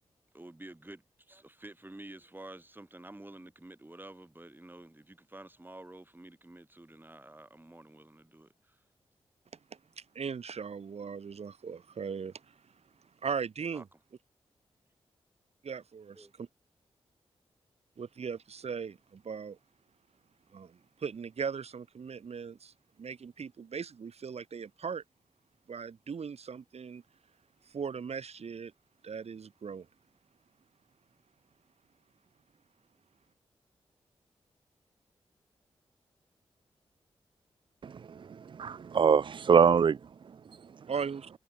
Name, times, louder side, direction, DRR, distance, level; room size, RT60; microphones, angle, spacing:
voice 1, 0.3-8.8 13.7-13.8 16.1-16.3, right 1 dB, 20° right, 7.6 m, -50 dB
voice 2, 10.0-12.6 13.2-13.9 15.6-16.5 18.0-19.6 20.5-22.7 23.0-25.0 25.7-27.0 27.6-28.7 29.0-29.9 40.9-41.3, right 6 dB, 70° right, 7.5 m, -38 dB
voice 3, 37.8-40.9, right 6 dB, 50° right, 0.4 m, -26 dB
cardioid pair, 65°, 11 cm